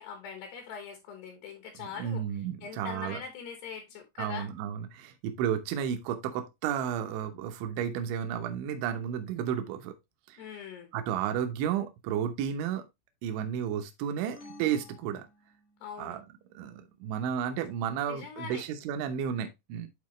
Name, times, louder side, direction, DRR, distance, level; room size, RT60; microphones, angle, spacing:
voice 1, 0.0-4.5 10.4-10.9 15.8-16.2 18.1-18.7, left 7 dB, 70° left, 2.9 m, -42 dB
voice 2, 1.8-3.2 4.2-9.9 10.3-10.4 10.9-12.8 13.2-15.3 16.0-16.2 16.5-19.9, right 9 dB, 75° right, 3.1 m, -32 dB
sound 1, 14.3-16.0, left 2 dB, 35° left, 1.3 m, -52 dB
10.5 x 4.1 x 3.0 m
omnidirectional pair, 5.7 m